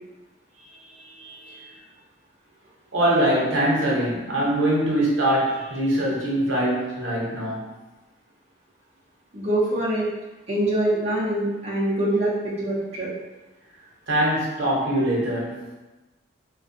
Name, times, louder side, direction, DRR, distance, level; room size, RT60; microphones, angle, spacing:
voice 1, 0.6-1.7 2.9-7.7 14.1-15.7, right 1 dB, 80° right, -5 dB, 0.7 m, -23 dB
voice 2, 9.3-10.1 10.5-13.1, right 1 dB, 35° right, -8 dB, 0.5 m, -24 dB
2.4 x 2.2 x 2.6 m, 1.1 s
head